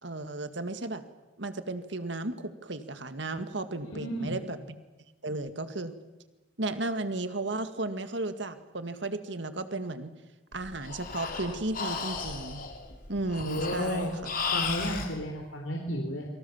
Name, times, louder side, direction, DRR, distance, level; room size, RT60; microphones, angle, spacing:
voice 1, 0.0-1.0 1.4-4.8 5.2-5.9 6.6-10.1 10.5-12.6 13.1-14.3, right 2 dB, 65° right, 10 dB, 2.0 m, -34 dB
voice 2, 3.9-4.4 13.5-14.2 14.5-16.3, equal, 80° left, 1 dB, 4.0 m, -32 dB
Breathing, 10.5-15.1, left 5 dB, 45° left, 3.5 m, -35 dB
29.5 x 24.5 x 7.3 m, 1.1 s
head